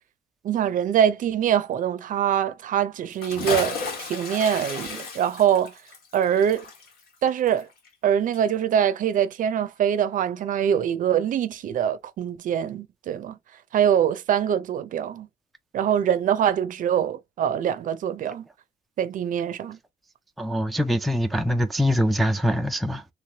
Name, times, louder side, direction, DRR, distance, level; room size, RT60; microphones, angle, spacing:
voice 1, 0.4-5.7 6.1-6.7 7.2-7.7 8.0-13.4 13.7-15.3 15.7-18.5 19.0-19.8, right 9 dB, 50° right, 0.5 m, -24 dB
Bathtub (filling or washing) / Splash splatter, 3.1-8.1 8.3-8.4, left 4 dB, 65° left, 1.4 m, -34 dB
voice 2, 20.4-23.0, equal, ahead, 0.4 m, -23 dB
3.1 x 3.1 x 2.8 m
cardioid pair, 110°, 17 cm